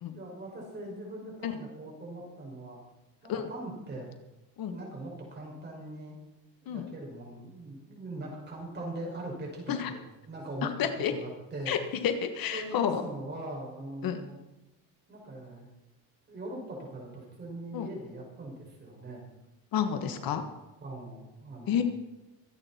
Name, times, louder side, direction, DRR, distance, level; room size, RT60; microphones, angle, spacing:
voice 1, 0.1-2.8 3.2-4.1 4.7-6.2 6.6-10.7 11.1-11.8 12.5-14.4 15.1-15.7 16.3-19.3 19.9-20.3 20.8-21.8, right 1 dB, 25° right, -2 dB, 5.9 m, -41 dB
voice 2, 10.8-11.1 11.7-13.0 14.0-14.2 17.7-17.9 19.7-20.4 21.7-21.8, left 8 dB, 55° left, 7 dB, 1.5 m, -30 dB
24.5 x 8.9 x 4.4 m, 1.0 s
cardioid pair, 130°, 41 cm